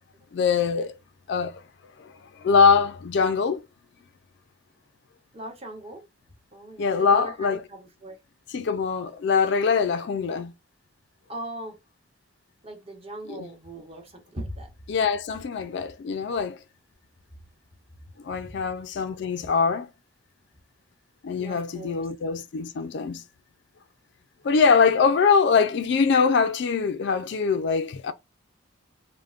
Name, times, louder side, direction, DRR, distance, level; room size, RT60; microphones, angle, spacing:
voice 1, 0.3-1.0 1.3-1.6 2.0-2.1 2.4-3.6 6.8-7.6 8.5-10.5 13.3-13.5 14.9-16.6 18.2-19.9 21.2-23.2 24.4-28.1, left 5 dB, 60° left, 0.3 m, -23 dB
voice 2, 5.3-6.0 6.5-8.2 11.3-11.8 12.6-14.7 18.3-18.7 19.2-19.3 21.4-22.0, right 1 dB, 30° right, 0.9 m, -40 dB
3.4 x 2.1 x 2.4 m
head